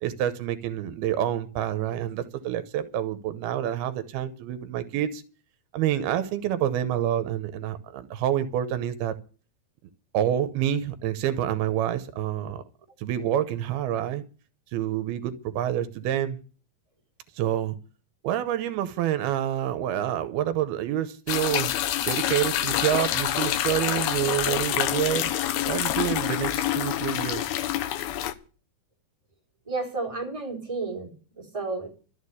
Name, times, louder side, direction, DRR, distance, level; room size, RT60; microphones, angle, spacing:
voice 1, 0.0-5.2 5.7-9.2 10.1-12.6 13.0-14.2 14.7-16.4 17.4-17.8 18.2-21.7 22.1-25.3 25.7-27.5, right 11 dB, 85° right, 2.8 m, -27 dB
sound 1, 21.3-28.3, left 12 dB, 80° left, 2.8 m, -27 dB
voice 2, 29.7-31.9, right 3 dB, 10° right, 3.8 m, -32 dB
13.0 x 7.1 x 9.7 m
omnidirectional pair, 4.5 m